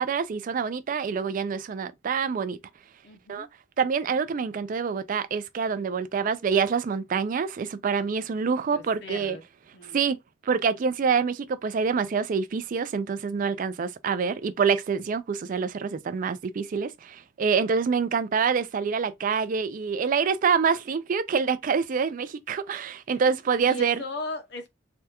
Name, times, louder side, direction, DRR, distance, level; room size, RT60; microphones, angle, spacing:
voice 1, 0.0-2.6 3.3-3.5 3.8-9.4 9.8-24.0, right 6 dB, 45° right, 0.3 m, -26 dB
voice 2, 3.0-3.5 8.7-9.4 9.7-10.0 23.6-24.7, left 2 dB, 60° left, 0.6 m, -37 dB
3.4 x 2.2 x 2.8 m
head